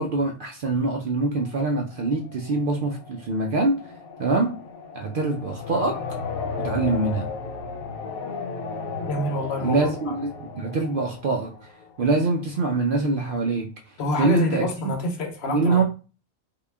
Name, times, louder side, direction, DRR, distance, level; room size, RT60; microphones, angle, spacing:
voice 1, 0.0-3.8 4.2-4.6 5.0-6.0 6.6-7.3 9.6-11.5 12.0-13.7 14.2-14.9 15.5-15.8, right 3 dB, 70° right, 0.5 m, -24 dB
sound 1, 1.4-12.3, left 4 dB, 90° left, 1.2 m, -35 dB
voice 2, 9.0-10.1 14.0-15.8, left 2 dB, 55° left, 1.0 m, -27 dB
3.7 x 2.3 x 3.3 m
omnidirectional pair, 1.4 m